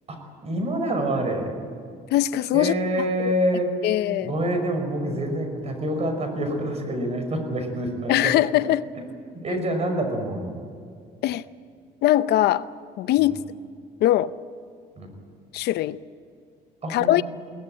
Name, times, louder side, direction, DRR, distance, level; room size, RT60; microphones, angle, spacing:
voice 1, 0.1-1.5 2.5-3.9 4.2-8.5 9.4-10.6 13.2-13.3 15.0-15.1 16.8-17.2, right 1 dB, 40° right, 5 dB, 5.8 m, -27 dB
voice 2, 2.1-2.8 3.2-3.3 3.8-4.3 8.1-8.9 11.2-11.4 12.0-12.7 13.0-13.4 14.0-14.3 15.5-16.0 16.9-17.2, left 14 dB, 75° left, 15 dB, 0.7 m, -21 dB
21.5 x 18.5 x 9.0 m, 2.3 s
cardioid pair, 110°, 17 cm